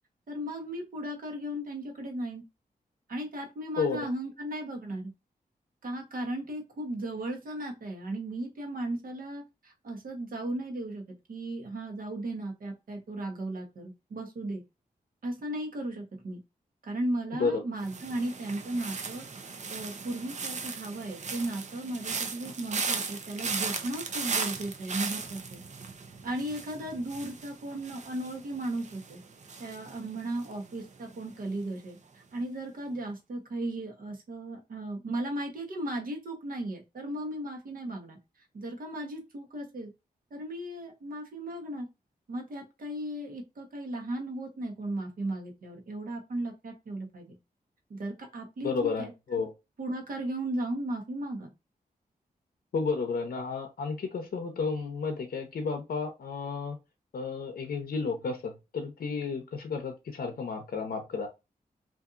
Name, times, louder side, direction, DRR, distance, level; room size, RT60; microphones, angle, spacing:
voice 1, 0.3-2.4 3.1-5.1 5.8-11.0 11.3-14.6 15.2-16.4 16.8-19.2 19.7-25.6 26.2-29.2 29.6-38.2 38.5-39.9 40.3-41.9 42.3-47.4 47.9-49.5 49.8-51.5, right 1 dB, 65° right, 2 dB, 0.9 m, -36 dB
voice 2, 3.8-4.1 17.4-17.6 48.6-49.5 52.7-56.8 57.1-61.3, left 4 dB, 70° left, 5 dB, 0.6 m, -32 dB
sound 1, 17.8-30.9 31.1-31.6, right 5 dB, 50° right, 0.5 m, -37 dB
2.7 x 2.5 x 2.4 m, 0.25 s
cardioid pair, 80°, 16 cm